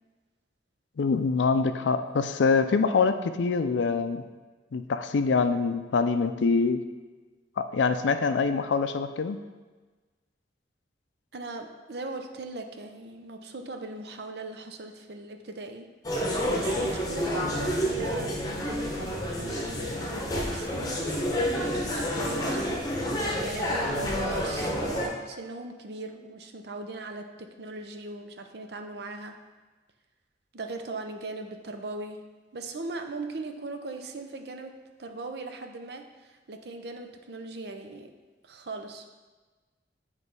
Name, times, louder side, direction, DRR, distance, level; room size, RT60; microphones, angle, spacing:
voice 1, 1.0-4.2 4.7-6.8 7.6-9.4, left 4 dB, 85° left, 10 dB, 0.4 m, -25 dB
voice 2, 11.3-15.9 16.3-18.3 18.7-21.0 21.6-22.8 23.4-29.4 30.5-32.2 32.5-34.7 35.0-38.1 38.4-39.2, right 2 dB, 65° right, 6 dB, 0.6 m, -39 dB
sound 1, 16.0-25.1, equal, 20° left, 0.9 m, -29 dB
8.0 x 3.2 x 5.3 m, 1.3 s
head